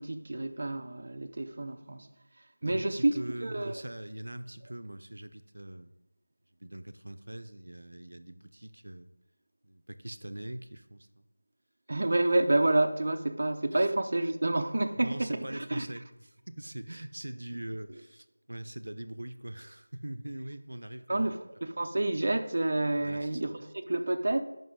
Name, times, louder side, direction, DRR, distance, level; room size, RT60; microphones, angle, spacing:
voice 1, 0.0-2.1 2.6-3.8 11.9-15.9 21.1-24.4, right 2 dB, 45° right, 0.6 m, -29 dB
voice 2, 2.6-5.9 6.6-9.1 9.6-11.3 13.7-13.9 15.0-21.3 23.0-23.5, right 1 dB, 80° right, 0.6 m, -42 dB
11.0 x 5.4 x 3.7 m
figure-of-eight pair, 175°, 0 cm